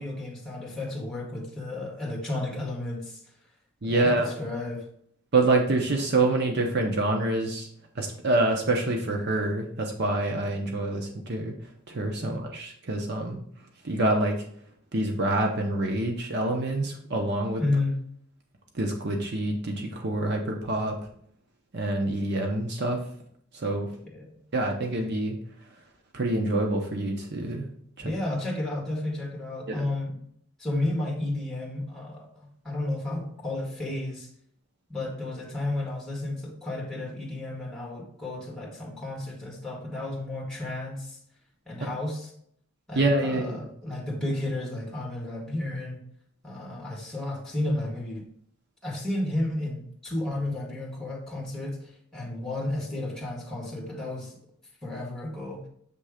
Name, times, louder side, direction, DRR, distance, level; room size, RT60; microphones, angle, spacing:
voice 1, 0.0-3.2 3.8-4.8 12.2-12.4 17.6-18.0 24.1-24.3 28.0-30.1 30.6-34.3 34.9-41.2 41.7-42.3 42.9-46.0 46.4-48.2 48.8-54.4 54.8-55.6, left 2 dB, 5° left, -1 dB, 1.7 m, -32 dB
voice 2, 3.8-4.4 5.3-7.7 8.0-11.5 11.9-13.4 13.8-14.4 14.9-17.6 18.7-20.9 21.7-23.0 23.5-23.9 24.5-25.4 26.1-27.7 28.0-28.1 29.7-29.8 41.8-41.9 42.9-43.6, right 2 dB, 50° right, 2 dB, 0.8 m, -26 dB
6.9 x 3.3 x 4.9 m, 0.65 s
head